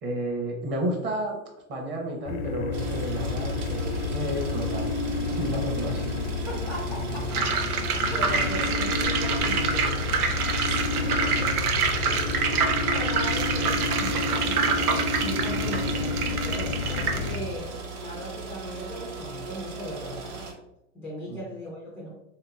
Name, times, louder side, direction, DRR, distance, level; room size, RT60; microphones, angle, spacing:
voice 1, 0.0-1.4 1.7-4.9 5.3-6.0 21.3-21.4, right 1 dB, 25° right, 1 dB, 0.9 m, -31 dB
sound 1, 2.3-17.4, left 4 dB, 80° left, 0.7 m, -30 dB
sound 2, 2.7-20.5, right 4 dB, 55° right, 1.2 m, -37 dB
voice 2, 6.5-7.3 8.0-11.7 12.3-17.7 18.0-20.5 20.9-22.2, equal, 5° left, -4 dB, 0.4 m, -38 dB
Deep Frying, 7.3-17.4, right 5 dB, 90° right, 0.8 m, -27 dB
3.5 x 2.9 x 3.5 m, 0.85 s
hypercardioid pair, 135°, 43 cm